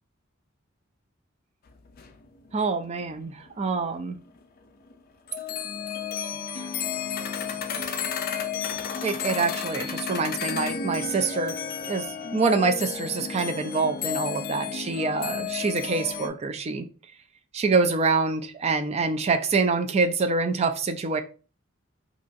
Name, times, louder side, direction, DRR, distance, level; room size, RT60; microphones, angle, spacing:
sound 1, 1.7-1.8 1.9-4.0 4.3-4.4 4.8-4.9 5.3-16.3, left 7 dB, 45° left, 0.4 m, -32 dB
voice 1, 2.5-4.2 6.6-6.7 9.0-11.6 11.8-12.1 12.3-16.9 17.5-21.2, right 4 dB, 30° right, 0.3 m, -26 dB
2.9 x 2.4 x 2.6 m
head